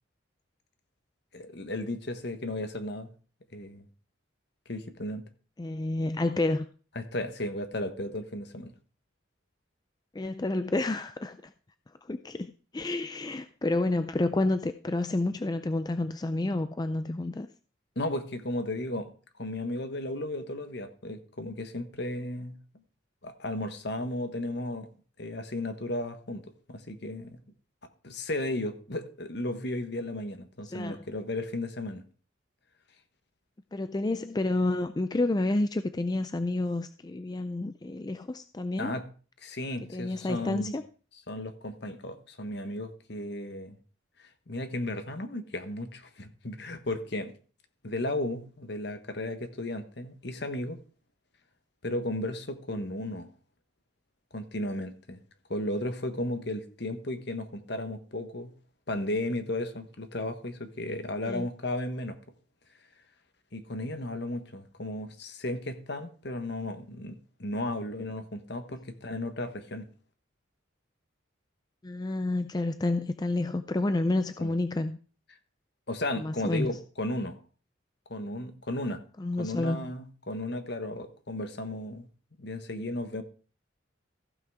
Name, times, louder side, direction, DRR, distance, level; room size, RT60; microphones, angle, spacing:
voice 1, 1.3-3.1 3.5-3.9 4.7-5.2 6.9-8.7 17.9-19.1 19.4-22.5 23.2-24.9 25.2-27.4 28.0-32.0 38.8-39.1 39.4-40.7 41.3-43.8 44.2-47.3 47.8-50.8 51.8-53.3 54.3-55.2 55.5-58.5 58.9-62.2 63.5-69.9 74.4-74.5 75.9-77.4 78.1-79.0 79.4-82.1 82.4-83.2, left 1 dB, 60° left, 1.3 m, -34 dB
voice 2, 5.6-6.7 10.1-11.5 12.0-17.5 30.7-31.0 33.7-38.9 39.9-40.8 61.2-61.5 71.8-75.0 76.2-76.7 79.2-79.8, left 2 dB, 20° left, 0.4 m, -29 dB
15.0 x 5.9 x 4.7 m
head